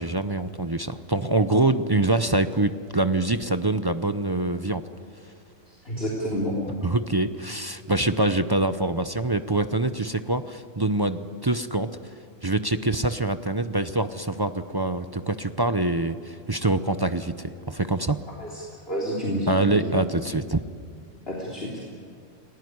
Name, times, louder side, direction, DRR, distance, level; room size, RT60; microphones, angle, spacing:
voice 1, 0.0-4.8 6.8-12.1 12.4-18.2 19.5-20.6, right 2 dB, 25° right, 10 dB, 0.5 m, -25 dB
voice 2, 5.7-6.6 18.4-19.9 21.3-21.8, equal, 45° left, -4 dB, 3.7 m, -29 dB
29.5 x 18.0 x 9.6 m, 2.2 s
omnidirectional pair, 1.4 m